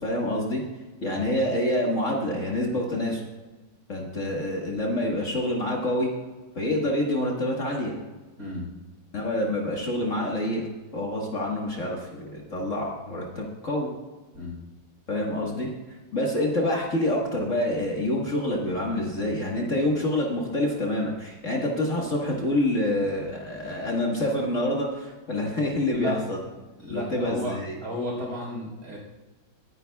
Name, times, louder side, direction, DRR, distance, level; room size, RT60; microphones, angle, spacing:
voice 1, 0.0-0.6 1.0-3.2 3.9-6.1 6.6-7.9 9.1-10.6 10.9-13.9 15.1-15.7 16.1-26.4 26.9-27.8, left 1 dB, 40° left, -2 dB, 1.8 m, -27 dB
voice 2, 8.4-8.7 14.3-14.6 25.9-26.2 26.8-29.0, left 1 dB, 55° right, -2 dB, 4.4 m, -32 dB
23.5 x 9.9 x 2.3 m, 1.2 s
omnidirectional pair, 2.1 m